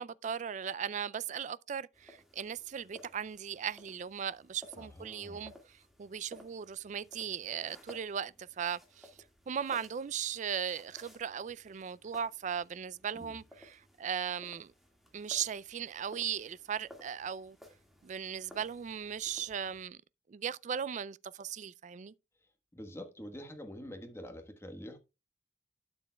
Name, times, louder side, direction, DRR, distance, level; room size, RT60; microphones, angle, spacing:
voice 1, 0.0-9.1 9.5-14.7 15.1-17.6 18.0-20.0 20.3-22.1, right 8 dB, 45° right, 0.4 m, -38 dB
sound 1, 1.9-19.9, left 1 dB, ahead, 1.8 m, -58 dB
voice 2, 4.8-5.5 13.1-13.4 22.7-25.0, equal, 15° left, 1.3 m, -46 dB
12.0 x 7.0 x 2.3 m
head